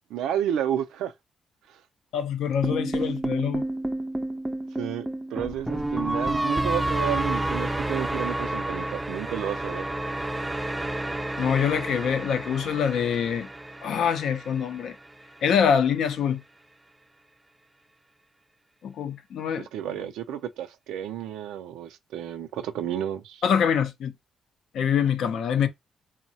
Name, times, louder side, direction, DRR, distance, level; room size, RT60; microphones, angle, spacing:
voice 1, 0.1-1.1 4.8-9.9 19.7-23.4, right 10 dB, 85° right, 0.4 m, -31 dB
voice 2, 2.1-3.6 11.4-13.5 13.8-15.0 15.4-16.4 18.8-19.7 23.4-24.1 24.7-25.7, left 7 dB, 70° left, 0.5 m, -25 dB
sound 1, 2.6-14.8, right 1 dB, 10° right, 0.4 m, -30 dB
3.7 x 2.1 x 2.7 m
cardioid pair, 90°, 0 cm